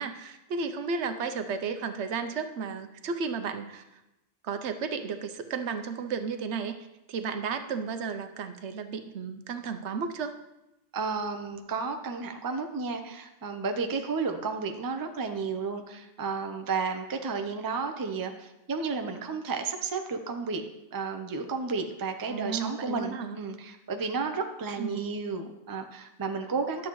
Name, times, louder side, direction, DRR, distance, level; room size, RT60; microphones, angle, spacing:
voice 1, 0.0-3.8 4.4-6.7 7.1-10.4 22.3-23.4 24.8-25.0, right 5 dB, 75° right, 8 dB, 1.0 m, -33 dB
voice 2, 10.9-20.6 20.9-26.9, right 4 dB, 25° right, 5 dB, 0.5 m, -32 dB
11.5 x 7.1 x 3.1 m, 0.93 s
omnidirectional pair, 1.2 m